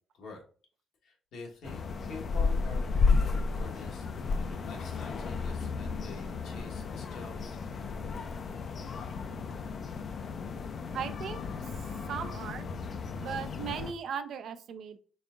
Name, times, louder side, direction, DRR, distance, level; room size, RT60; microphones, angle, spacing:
voice 1, 1.0-7.6, left 2 dB, 75° left, -1 dB, 1.3 m, -46 dB
sound 1, 1.6-13.9, left 4 dB, 50° left, 0.4 m, -33 dB
voice 2, 10.9-11.4 12.1-12.6 13.2-15.0, right 7 dB, 70° right, 9 dB, 0.4 m, -37 dB
4.1 x 3.5 x 2.5 m, 0.41 s
cardioid pair, 90°, 0 cm